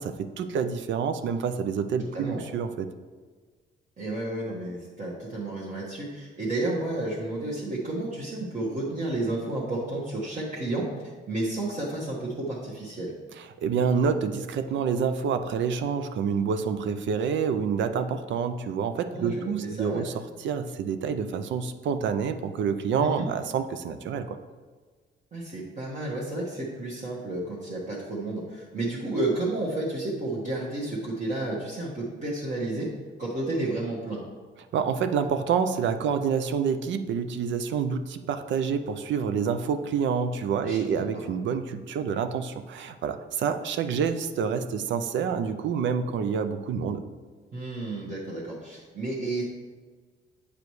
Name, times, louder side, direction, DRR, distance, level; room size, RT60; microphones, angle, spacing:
voice 1, 0.0-2.9 13.6-20.1 20.4-24.4 34.7-47.0, right 6 dB, 70° right, 9 dB, 0.5 m, -27 dB
voice 2, 2.0-2.4 4.0-10.9 11.3-13.1 19.1-20.0 23.0-23.3 25.3-32.9 33.2-34.2 40.6-41.2 47.5-49.4, right 2 dB, 40° right, -5 dB, 1.2 m, -31 dB
8.3 x 4.9 x 3.1 m, 1.4 s
cardioid pair, 90°, 20 cm